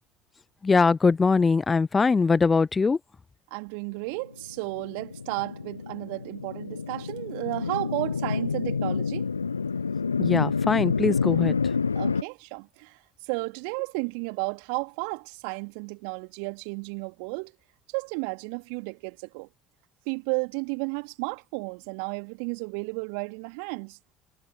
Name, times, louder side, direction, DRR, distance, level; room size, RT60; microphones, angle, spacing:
voice 1, 0.6-3.0 10.2-11.6, left 4 dB, 25° left, 0.5 m, -22 dB
voice 2, 3.5-9.3 12.0-17.5 17.9-19.5 20.1-24.0, right 40 dB or more, 60° right, 2.3 m, -33 dB
sound 1, 4.5-12.2, left 5 dB, 85° left, 0.6 m, -28 dB
figure-of-eight pair, 60°, 0 cm